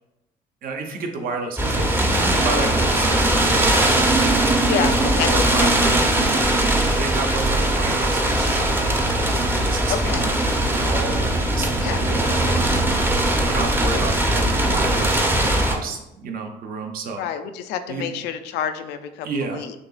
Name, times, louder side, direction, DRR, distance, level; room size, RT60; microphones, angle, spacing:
voice 1, 0.6-3.9 4.4-6.4 6.8-13.1 13.4-17.2 17.9-18.1 19.2-19.7, right 3 dB, 60° right, 3 dB, 0.8 m, -31 dB
sound 1, 1.6-15.8, right 1 dB, 10° right, 0.6 m, -20 dB
voice 2, 4.7-5.7 9.9-10.3 11.8-12.0 17.2-19.7, left 8 dB, 85° left, 10 dB, 0.4 m, -28 dB
6.4 x 2.8 x 2.4 m, 0.93 s
cardioid pair, 110°, 17 cm